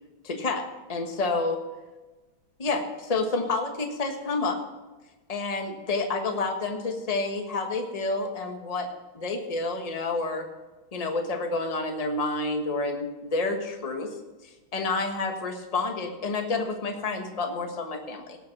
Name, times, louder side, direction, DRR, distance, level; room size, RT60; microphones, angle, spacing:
voice 1, 0.2-0.6 0.9-1.6 2.6-4.6 5.3-8.9 9.1-10.4 10.9-14.1 14.4-18.4, left 3 dB, 20° left, 4 dB, 1.1 m, -29 dB
18.0 x 6.0 x 6.0 m, 1.2 s
omnidirectional pair, 2.3 m